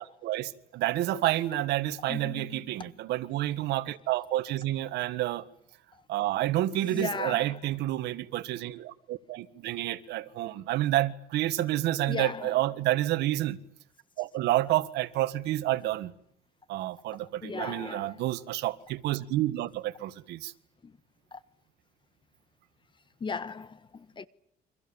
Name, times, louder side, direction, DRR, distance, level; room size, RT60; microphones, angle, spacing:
voice 1, 0.0-5.4 6.1-13.6 14.2-16.1 16.7-20.5, right 15 dB, 85° right, 1.8 m, -29 dB
voice 2, 2.1-2.9 5.9-6.0 6.8-7.6 12.1-12.6 17.4-18.2 20.8-20.9 21.3-21.4 23.2-24.3, left 5 dB, 30° left, 1.4 m, -37 dB
29.5 x 25.5 x 7.2 m
cardioid pair, 110°, 17 cm